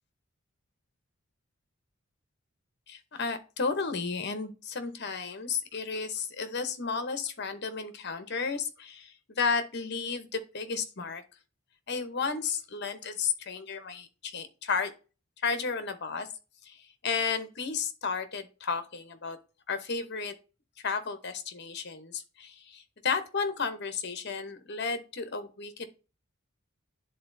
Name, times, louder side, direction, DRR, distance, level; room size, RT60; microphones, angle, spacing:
voice 1, 2.9-11.2 11.9-14.9 15.4-16.3 16.6-16.8 17.0-19.4 19.7-20.3 20.8-25.9, left 5 dB, 50° left, 9 dB, 0.8 m, -33 dB
10.5 x 3.9 x 2.6 m, 0.33 s
head